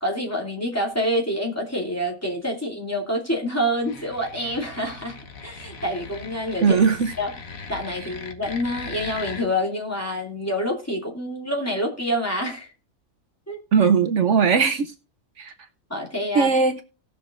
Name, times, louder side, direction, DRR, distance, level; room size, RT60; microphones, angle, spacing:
voice 1, 0.0-5.2 5.4-6.8 7.2-7.3 7.7-12.7 13.5-13.9 15.9-16.5, equal, 10° left, -2 dB, 2.5 m, -27 dB
sound 1, 3.8-9.5, left 4 dB, 85° left, 1.6 m, -39 dB
voice 2, 6.6-7.1 13.7-14.9 15.4-15.5 16.3-16.8, right 5 dB, 65° right, 8 dB, 1.0 m, -19 dB
18.5 x 6.4 x 2.5 m, 0.34 s
omnidirectional pair, 1.4 m